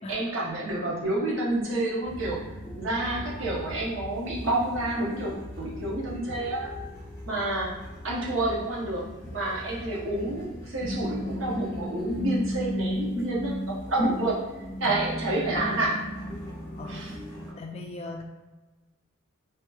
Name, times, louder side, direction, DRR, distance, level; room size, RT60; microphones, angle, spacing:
voice 1, 0.1-2.4 2.8-6.7 7.3-7.8 8.0-14.4 14.8-16.1 16.9-17.1, right 1 dB, 65° right, -5 dB, 0.9 m, -29 dB
sound 1, 2.0-17.5, equal, 10° left, 1.3 m, -36 dB
voice 2, 16.7-17.1 17.6-18.2, left 2 dB, 30° left, 2 dB, 0.3 m, -38 dB
3.4 x 2.8 x 2.3 m, 1.2 s
head